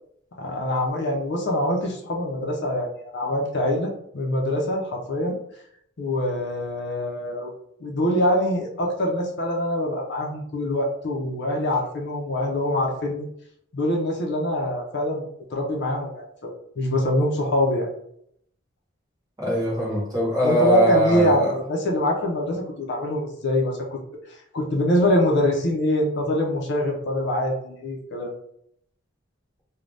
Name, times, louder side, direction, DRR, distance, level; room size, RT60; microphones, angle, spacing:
voice 1, 0.4-5.4 6.0-7.5 7.8-13.3 13.7-15.2 15.5-17.9 20.4-24.0 24.3-28.3, left 1 dB, 55° left, 0 dB, 0.5 m, -24 dB
voice 2, 19.4-21.5, right 1 dB, 20° right, -5 dB, 1.0 m, -21 dB
2.5 x 2.2 x 3.2 m, 0.70 s
head